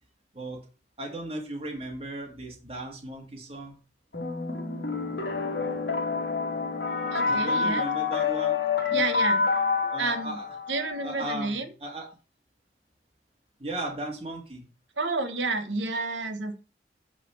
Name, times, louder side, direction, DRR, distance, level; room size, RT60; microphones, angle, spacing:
voice 1, 1.0-3.8 7.3-8.6 8.9-9.0 9.9-10.5 11.0-12.1 13.6-14.7, right 1 dB, 30° right, 0 dB, 1.9 m, -36 dB
sound 1, 4.1-11.2, left 4 dB, 65° left, 2.4 m, -28 dB
voice 2, 7.1-7.8 8.9-9.4 10.0-10.4 10.7-11.7 15.0-16.6, right 3 dB, 90° right, 8 dB, 1.3 m, -30 dB
9.1 x 4.2 x 5.7 m, 0.35 s
head